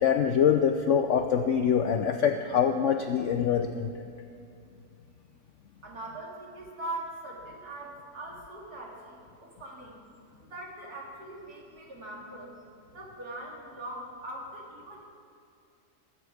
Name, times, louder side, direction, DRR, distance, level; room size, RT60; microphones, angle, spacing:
voice 1, 0.0-3.9, left 8 dB, 75° left, 7 dB, 0.7 m, -24 dB
voice 2, 5.8-10.0 10.4-12.5 12.9-15.0, right 2 dB, 70° right, -2 dB, 2.7 m, -41 dB
19.5 x 8.3 x 4.8 m, 2.5 s
omnidirectional pair, 1.8 m